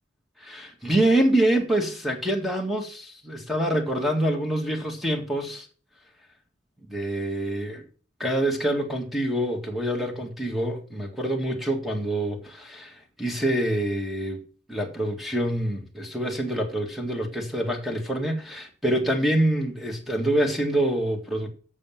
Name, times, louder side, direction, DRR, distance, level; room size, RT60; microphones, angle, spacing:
voice 1, 0.4-5.7 6.9-7.8 8.2-14.4 14.7-21.5, right 1 dB, ahead, 1.8 m, -26 dB
7.9 x 6.5 x 7.4 m
head